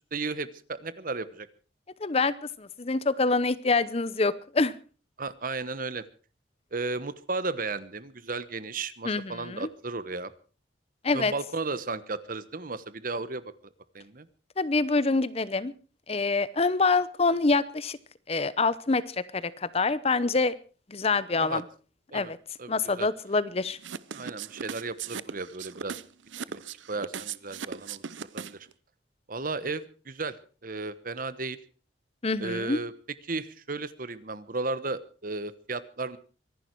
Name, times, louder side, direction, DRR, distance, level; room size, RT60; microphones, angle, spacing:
voice 1, 0.1-1.5 5.2-6.1 6.7-10.3 11.1-13.5 13.9-14.3 21.4-21.6 22.1-22.3 22.6-23.1 24.1-26.0 26.5-26.6 26.9-28.0 28.3-28.7 29.3-30.4 30.6-31.6 32.4-32.9 33.2-36.2, right 3 dB, 50° right, 15 dB, 1.1 m, -34 dB
voice 2, 2.0-4.7 9.0-9.7 11.0-11.3 14.6-15.7 16.1-18.0 18.3-20.5 20.9-21.6 22.1-22.4 22.7-23.8 32.2-32.8, left 3 dB, 35° left, 17 dB, 0.7 m, -26 dB
sound 1, 23.8-28.7, right 7 dB, 90° right, 0.7 m, -37 dB
24.0 x 11.0 x 4.6 m, 0.38 s
head